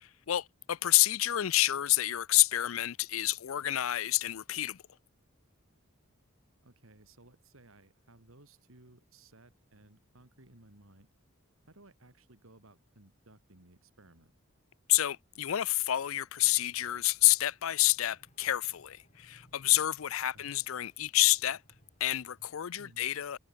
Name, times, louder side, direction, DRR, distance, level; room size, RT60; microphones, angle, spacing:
voice 1, 0.0-4.8 14.9-21.6 22.0-23.4, left 15 dB, 80° left, 0.5 m, -28 dB
voice 2, 6.6-11.1 11.7-14.3 20.3-20.5 22.8-23.1, right 2 dB, 80° right, 2.7 m, -59 dB
sound 1, 16.4-22.5, left 1 dB, 35° left, 3.6 m, -65 dB
head